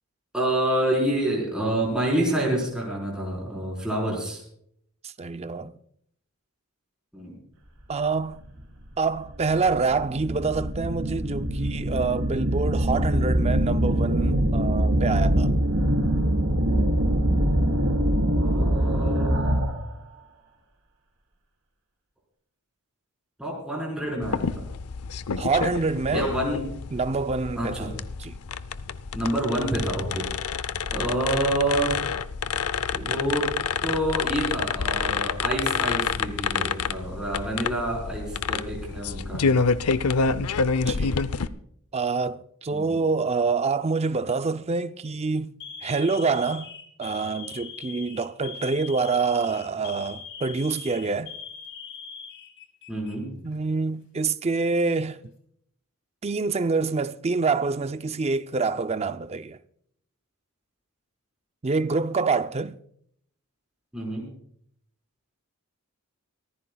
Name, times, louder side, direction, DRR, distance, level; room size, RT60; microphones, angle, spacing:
voice 1, 0.3-4.4 7.1-7.4 18.4-19.5 23.4-24.6 26.1-26.7 27.6-27.9 29.1-30.3 30.9-32.0 32.9-33.5 33.8-39.6 42.7-42.9 52.9-53.4 63.9-64.3, right 1 dB, 5° right, 4.2 m, -28 dB
voice 2, 5.0-5.7 7.9-8.4 9.0-15.5 25.4-26.3 26.9-27.9 28.2-28.3 40.9-41.2 41.9-45.5 45.8-46.7 47.0-51.3 53.4-55.2 56.2-59.6 61.6-62.7, right 4 dB, 30° right, 0.5 m, -26 dB
sound 1, 8.5-8.6 9.2-19.9, right 1 dB, 65° right, 3.7 m, -23 dB
sound 2, 24.2-41.5, left 5 dB, 85° left, 0.6 m, -28 dB
Alarm, 42.7-43.2 44.1-44.4 44.8-45.0 45.6-53.1 53.4-53.6 54.5-55.2, left 6 dB, 55° left, 3.3 m, -42 dB
24.0 x 15.0 x 2.3 m
head